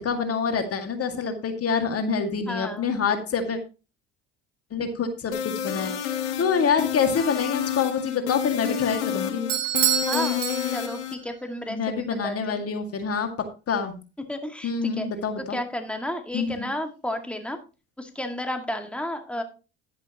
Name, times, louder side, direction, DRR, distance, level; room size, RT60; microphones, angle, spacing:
voice 1, 0.0-3.6 4.7-9.5 11.7-13.3 13.7-14.0 14.6-15.6 16.3-16.7, left 6 dB, 40° left, 6 dB, 2.1 m, -26 dB
voice 2, 2.5-2.9 10.1-10.4 10.7-12.6 14.3-15.1 15.4-17.6 18.0-19.4, left 1 dB, 5° left, 5 dB, 2.1 m, -32 dB
sound 1, 5.3-11.1, left 9 dB, 85° left, 1.4 m, -29 dB
Bell / Doorbell, 9.5-11.2, right 11 dB, 65° right, 1.6 m, -26 dB
11.0 x 10.5 x 3.0 m, 0.31 s
hypercardioid pair, 65°, 35 cm